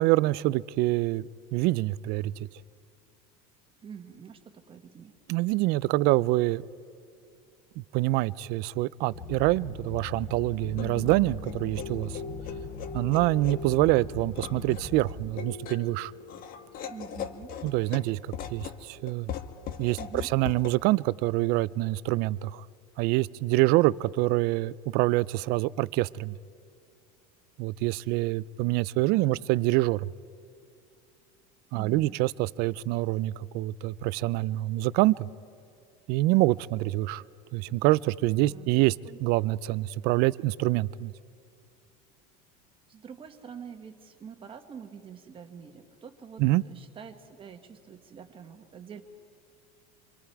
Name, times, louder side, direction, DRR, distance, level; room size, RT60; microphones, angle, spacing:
voice 1, 0.0-2.5 5.3-6.6 7.9-12.2 12.9-16.1 17.6-18.2 18.5-19.3 19.8-22.6 23.0-26.4 27.6-30.1 31.7-35.3 36.1-37.2 37.5-38.9 39.2-41.1 46.4-46.6, right 18 dB, 55° right, 20 dB, 0.4 m, -26 dB
voice 2, 3.8-5.1 12.9-13.3 16.8-17.6 20.0-20.3 29.1-29.4 31.7-32.2 38.5-39.2 42.9-49.0, right 7 dB, 25° right, 7 dB, 1.5 m, -46 dB
sound 1, 9.1-15.1, left 2 dB, 80° left, 4.5 m, -40 dB
sound 2, 9.9-20.8, left 8 dB, 45° left, 1.3 m, -40 dB
27.0 x 23.0 x 4.7 m, 2.4 s
supercardioid pair, 135°, 20 cm